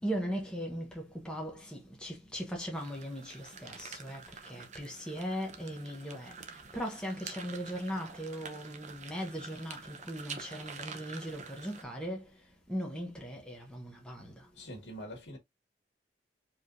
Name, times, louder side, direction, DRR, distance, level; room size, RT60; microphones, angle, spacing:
voice 1, 0.0-12.3 12.7-14.5, equal, 5° left, 1.1 m, -39 dB
sound 1, 2.7-11.8, right 5 dB, 45° right, 0.8 m, -47 dB
voice 2, 14.5-15.4, equal, 90° left, 1.8 m, -44 dB
4.8 x 3.5 x 2.6 m
head